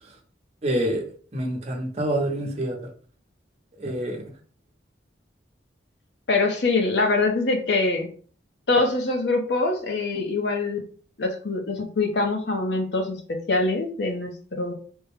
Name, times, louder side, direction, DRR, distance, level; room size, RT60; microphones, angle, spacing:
voice 1, 0.6-2.8 3.8-4.3, right 1 dB, 35° right, 0 dB, 0.8 m, -27 dB
voice 2, 6.3-8.1 8.7-10.8 11.2-14.7, left 3 dB, 70° left, 3 dB, 0.8 m, -24 dB
3.5 x 2.2 x 3.4 m, 0.42 s
head